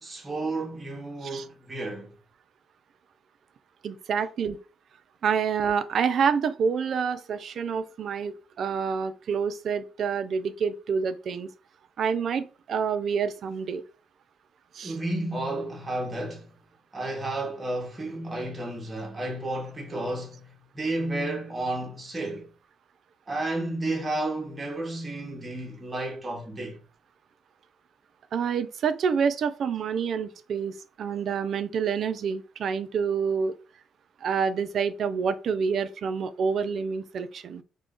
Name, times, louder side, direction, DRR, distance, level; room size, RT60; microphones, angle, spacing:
voice 1, 0.0-2.1 14.8-16.5 16.9-22.5 23.3-26.8, right 2 dB, 20° right, 0.8 m, -32 dB
voice 2, 3.8-4.6 5.2-11.5 12.0-13.8 14.7-15.0 28.3-33.5 34.2-37.6, right 6 dB, 60° right, 0.3 m, -27 dB
2.4 x 2.1 x 3.6 m
cardioid pair, 90°, 0 cm